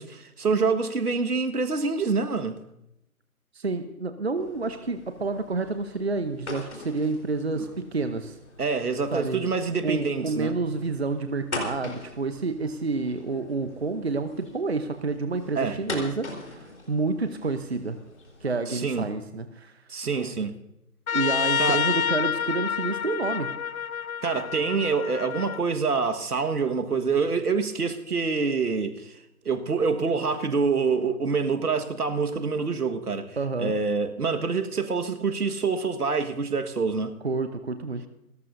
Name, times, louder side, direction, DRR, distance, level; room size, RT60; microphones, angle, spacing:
voice 1, 0.0-2.6 7.5-7.6 8.6-10.5 15.5-15.8 18.7-19.1 19.9-20.6 21.6-21.8 24.2-29.2 29.4-33.3 33.6-37.2, right 4 dB, 80° right, 1.7 m, -26 dB
voice 2, 3.5-8.4 9.1-9.4 9.8-18.0 18.4-19.8 21.1-23.5 33.4-33.7 37.2-38.0, right 3 dB, 45° right, 0.9 m, -29 dB
sound 1, 4.3-18.5, left 2 dB, 50° left, 4.1 m, -42 dB
Trumpet, 21.1-25.6, left 7 dB, 65° left, 0.6 m, -28 dB
29.0 x 14.0 x 2.7 m
figure-of-eight pair, 175°, 45 cm